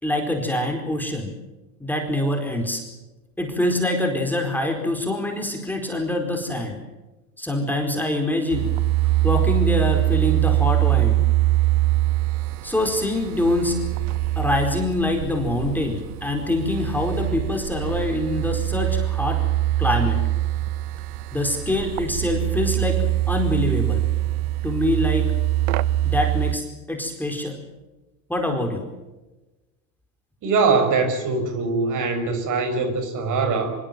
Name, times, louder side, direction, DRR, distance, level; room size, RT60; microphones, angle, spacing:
voice 1, 0.0-1.3 1.8-2.8 3.4-6.8 7.4-8.7 9.2-11.2 12.6-13.8 14.4-19.4 19.8-20.2 21.3-24.0 24.6-25.3 26.0-27.6 28.3-28.9, left 1 dB, 5° left, 2 dB, 4.5 m, -24 dB
sound 1, 8.5-26.6, right 16 dB, 65° right, 1.2 m, -23 dB
voice 2, 30.4-33.8, right 4 dB, 40° right, 8 dB, 5.7 m, -22 dB
25.0 x 24.0 x 7.7 m, 1.1 s
hypercardioid pair, 110°, 48 cm